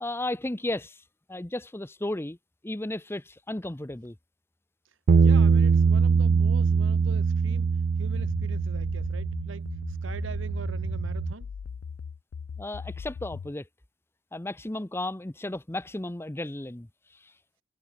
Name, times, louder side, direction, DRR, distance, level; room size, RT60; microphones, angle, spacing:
voice 1, 0.0-1.0 1.3-2.4 2.6-4.2 12.6-13.7 14.3-16.9, left 1 dB, 10° left, 0.7 m, -34 dB
sound 1, 5.1-11.3, right 5 dB, 60° right, 0.4 m, -23 dB
voice 2, 5.1-7.7 8.0-11.5, right 3 dB, 80° right, 1.0 m, -43 dB
sound 2, 8.2-13.5, left 6 dB, 80° left, 0.4 m, -39 dB
head